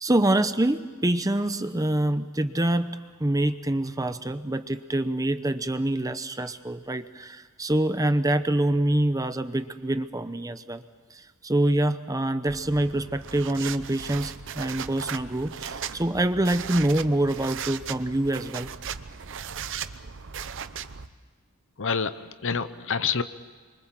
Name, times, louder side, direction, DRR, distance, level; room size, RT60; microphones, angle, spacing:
voice 1, 0.0-10.8 11.1-18.7, right 1 dB, 15° right, 10 dB, 0.9 m, -26 dB
sound 1, 12.5-21.1, right 7 dB, 60° right, 0.8 m, -37 dB
voice 2, 21.8-23.2, left 5 dB, 60° left, 13 dB, 1.0 m, -27 dB
27.0 x 24.5 x 7.6 m, 1.5 s
head